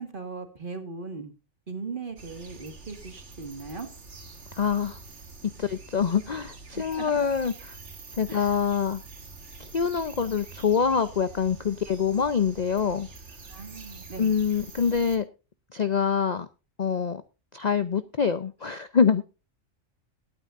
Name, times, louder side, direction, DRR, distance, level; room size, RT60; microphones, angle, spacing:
voice 1, 0.0-1.3 1.7-3.9 6.7-7.3 8.3-8.6 13.4-14.4, right 4 dB, 40° right, 6 dB, 2.1 m, -38 dB
sound 1, 2.2-15.2, right 3 dB, 60° right, 2.0 m, -46 dB
voice 2, 4.6-5.0 5.6-7.5 8.2-9.0 9.6-13.1 14.2-15.2 15.7-16.5 16.8-17.2 17.5-19.2, left 6 dB, 45° left, 12 dB, 0.6 m, -25 dB
20.0 x 9.1 x 2.6 m, 0.30 s
omnidirectional pair, 1.4 m